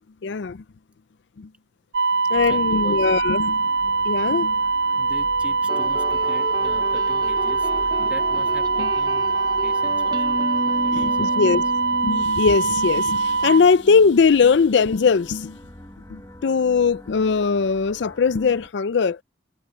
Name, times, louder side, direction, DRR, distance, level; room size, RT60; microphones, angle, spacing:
voice 1, 0.2-0.6 1.4-1.5 2.3-3.6 4.0-4.6 8.0-8.1 8.8-8.9 10.9-11.6 12.0-15.6 16.1-19.2, left 5 dB, 75° left, 0.5 m, -20 dB
sound 1, 1.9-13.7, right 4 dB, 75° right, 0.5 m, -22 dB
voice 2, 2.1-3.1 4.9-11.4, equal, 5° right, 1.8 m, -43 dB
sound 2, 2.3-18.7, left 1 dB, 15° left, 0.8 m, -44 dB
sound 3, 5.7-12.2, right 1 dB, 25° right, 0.8 m, -32 dB
head